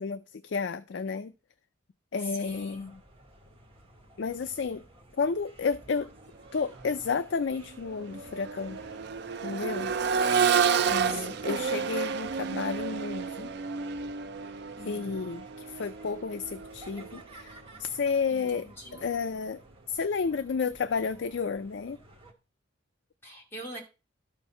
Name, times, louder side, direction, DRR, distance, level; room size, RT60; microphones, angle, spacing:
voice 1, 0.0-1.3 2.1-3.0 4.2-4.8 5.2-6.1 6.5-8.8 9.4-9.9 10.9-13.5 14.8-19.6 19.9-22.0, left 5 dB, 60° left, 0.4 m, -31 dB
voice 2, 2.2-2.9 10.8-11.4 14.8-15.1 18.3-19.0 23.2-23.8, equal, 10° left, 2.6 m, -43 dB
sound 1, 2.4-22.3, right 1 dB, 30° right, 1.6 m, -54 dB
Accelerating revving vroom, 6.7-6.9 7.3-17.2 18.9-19.0, right 6 dB, 55° right, 0.4 m, -30 dB
12.5 x 4.5 x 5.5 m
head